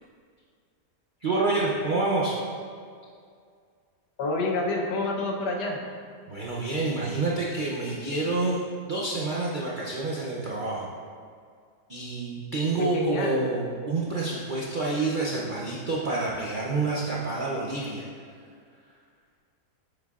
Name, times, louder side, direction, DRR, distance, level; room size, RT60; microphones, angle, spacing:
voice 1, 1.2-2.4 6.3-8.6 8.9-10.9 11.9-18.0, right 3 dB, 65° right, -4 dB, 0.5 m, -28 dB
voice 2, 4.2-5.8 12.8-13.4, left 2 dB, 85° left, 0 dB, 1.5 m, -28 dB
8.1 x 6.6 x 2.4 m, 2.2 s
omnidirectional pair, 1.7 m